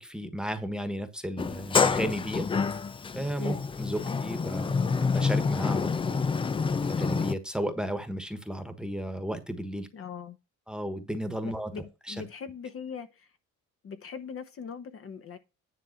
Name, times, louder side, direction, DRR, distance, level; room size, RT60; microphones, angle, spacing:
voice 1, 0.0-2.5 3.1-6.2 6.8-9.9 10.7-11.7 12.1-12.2, right 1 dB, 5° right, 1.3 m, -34 dB
Sliding door, 1.4-7.3, left 5 dB, 20° left, 0.4 m, -28 dB
voice 2, 9.9-10.4 11.4-13.3 13.8-15.4, left 6 dB, 45° left, 1.1 m, -40 dB
10.0 x 3.6 x 6.5 m
cardioid pair, 120°, 30 cm